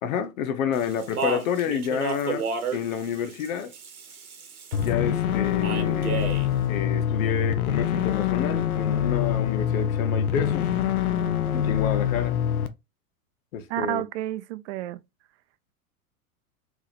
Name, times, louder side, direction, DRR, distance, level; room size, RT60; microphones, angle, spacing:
voice 1, 0.0-3.7 4.8-6.3 6.7-10.7 11.5-12.4 13.5-14.0, left 7 dB, 65° left, 1.0 m, -29 dB
Speech, 0.7-4.9 5.6-6.5, right 5 dB, 90° right, 1.0 m, -32 dB
sound 1, 4.7-12.7, left 10 dB, 85° left, 0.7 m, -25 dB
voice 2, 13.7-15.0, right 14 dB, 55° right, 0.5 m, -30 dB
3.6 x 3.1 x 3.1 m
hypercardioid pair, 95°, 43 cm